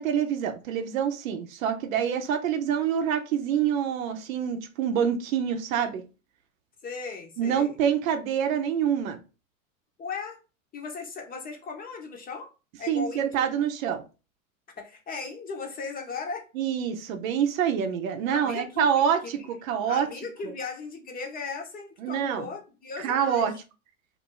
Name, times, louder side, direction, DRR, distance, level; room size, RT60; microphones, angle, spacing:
voice 1, 0.0-6.0 7.4-9.2 12.9-14.0 16.5-20.1 22.0-22.5 23.0-23.5, right 8 dB, 75° right, 0.7 m, -26 dB
voice 2, 6.8-7.8 10.0-10.4 10.7-12.5 12.8-13.3 14.8-16.5 18.3-19.5 19.9-23.5, left 4 dB, 20° left, 0.8 m, -37 dB
2.6 x 2.5 x 3.7 m
hypercardioid pair, 115°, 41 cm